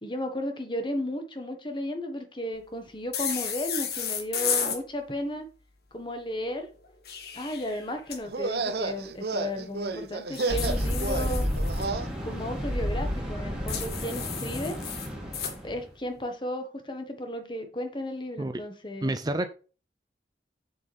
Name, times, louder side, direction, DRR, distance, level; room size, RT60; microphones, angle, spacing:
voice 1, 0.0-5.5 5.9-6.7 7.3-11.5 12.2-14.8 15.6-19.2, left 1 dB, 25° left, 1.5 m, -34 dB
sound 1, 3.1-4.8 6.8-8.2 10.3-11.8 13.7-15.6, left 7 dB, 60° left, 1.8 m, -33 dB
sound 2, 8.2-12.1, right 3 dB, 60° right, 0.9 m, -31 dB
sound 3, 10.5-15.8, equal, 5° right, 2.6 m, -31 dB
voice 2, 19.0-19.5, right 1 dB, 20° right, 0.6 m, -28 dB
7.9 x 7.0 x 3.5 m
head